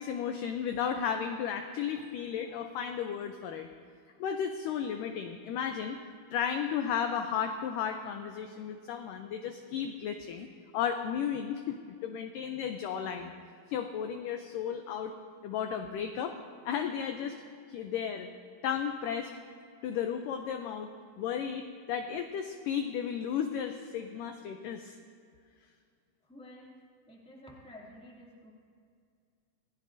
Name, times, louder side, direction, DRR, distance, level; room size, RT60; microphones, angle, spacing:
voice 1, 0.0-3.7 4.2-6.0 6.3-10.5 10.7-13.3 13.7-15.1 15.4-16.3 16.7-17.4 17.7-18.3 18.6-19.3 19.8-25.0, left 8 dB, 80° left, 6 dB, 1.9 m, -34 dB
voice 2, 26.2-26.7 27.1-28.5, left 1 dB, ahead, -4 dB, 1.5 m, -51 dB
26.5 x 16.5 x 2.6 m, 2.3 s
omnidirectional pair, 4.5 m